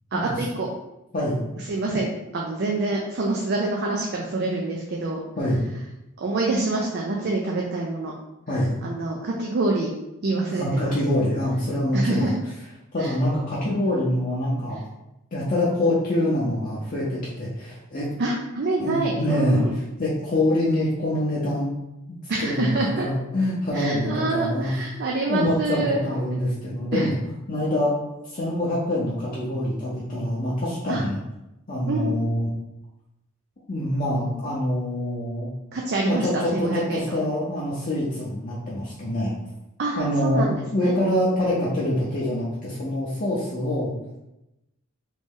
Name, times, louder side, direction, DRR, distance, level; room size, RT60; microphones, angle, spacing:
voice 1, 0.1-0.7 1.7-5.2 6.2-8.1 8.8-9.9 10.2-11.0 11.9-12.3 13.0-13.1 18.2-19.7 22.3-23.1 23.7-26.0 26.9-27.1 30.9-31.0 31.9-32.1 35.7-37.2 39.8-40.9, right 2 dB, 50° right, -1 dB, 0.4 m, -26 dB
voice 2, 10.5-12.3 12.9-14.8 15.3-18.1 18.8-19.6 20.0-21.7 22.1-22.2 22.4-24.7 25.3-27.2 27.5-27.9 28.2-31.2 31.7-32.5 33.7-35.5 36.0-39.3 40.0-43.9, left 1 dB, 40° left, -7 dB, 0.6 m, -25 dB
3.1 x 2.6 x 3.6 m, 0.92 s
head